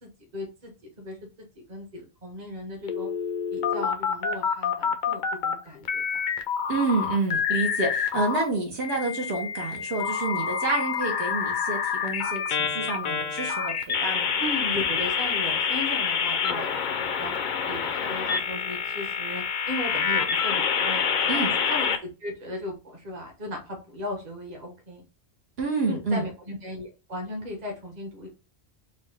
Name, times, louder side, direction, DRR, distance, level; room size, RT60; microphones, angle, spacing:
voice 1, 0.0-0.7 1.0-3.1 3.5-6.0 14.4-21.9 22.2-25.0 25.9-28.3, left 1 dB, 40° right, 1 dB, 1.1 m, -37 dB
sound 1, 2.9-5.5 5.8-8.4 8.8-22.0, left 6 dB, 55° left, 0.6 m, -27 dB
voice 2, 6.7-14.4 21.3-21.5 25.6-26.3, right 3 dB, 70° right, 0 dB, 1.2 m, -28 dB
4.2 x 2.2 x 3.3 m, 0.31 s
omnidirectional pair, 1.1 m